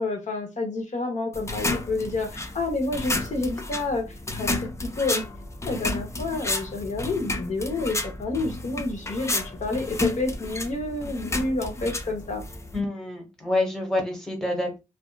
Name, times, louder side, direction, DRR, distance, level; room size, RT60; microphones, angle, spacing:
voice 1, 0.0-5.2 5.6-12.4, left 2 dB, 60° left, 3 dB, 0.8 m, -29 dB
sound 1, 1.3-12.8, left 2 dB, 20° left, 0.3 m, -31 dB
voice 2, 12.7-14.8, left 2 dB, 5° left, 1 dB, 0.9 m, -27 dB
2.6 x 2.2 x 2.3 m, 0.24 s
wide cardioid pair, 120°, 14 cm